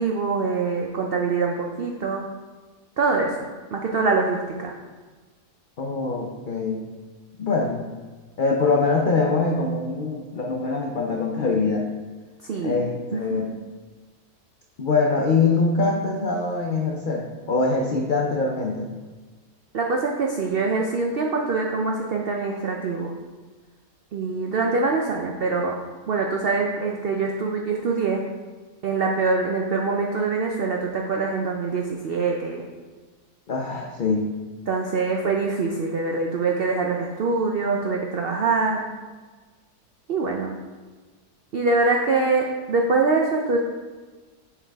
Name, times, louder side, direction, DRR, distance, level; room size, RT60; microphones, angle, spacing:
voice 1, 0.0-2.2 3.0-4.7 12.5-12.8 13.1-13.4 19.7-23.2 24.1-25.8 26.1-28.2 28.8-32.7 34.7-38.9 40.1-40.5 41.5-43.6, right 4 dB, 85° right, 1 dB, 0.5 m, -24 dB
voice 2, 5.8-6.8 7.4-7.9 8.4-11.8 12.6-13.6 14.8-18.9 33.5-34.3 38.0-38.1 38.7-38.8, left 3 dB, 85° left, 0 dB, 0.4 m, -23 dB
7.2 x 4.7 x 3.4 m, 1.4 s
omnidirectional pair, 1.7 m